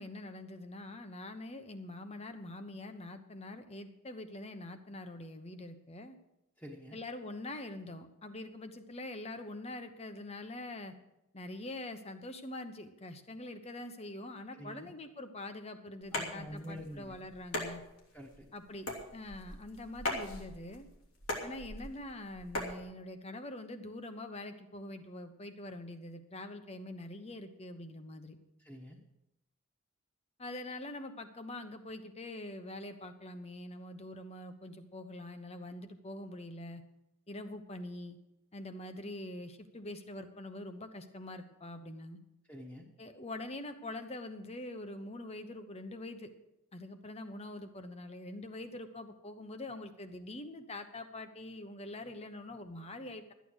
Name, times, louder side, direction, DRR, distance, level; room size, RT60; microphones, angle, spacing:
voice 1, 0.0-6.2 6.9-10.9 11.3-17.8 18.5-18.9 19.1-20.9 21.4-28.4 30.4-36.8 37.3-38.2 38.5-42.2 43.0-46.3 46.7-53.3, left 1 dB, 30° left, 8 dB, 1.0 m, -44 dB
voice 2, 6.6-7.0 14.5-14.9 16.1-17.2 18.1-18.5 28.6-29.0 42.5-42.9, equal, 10° left, -3 dB, 1.3 m, -47 dB
sound 1, 16.0-22.8, left 1 dB, 80° left, 2.8 m, -40 dB
13.5 x 9.3 x 6.3 m, 0.89 s
head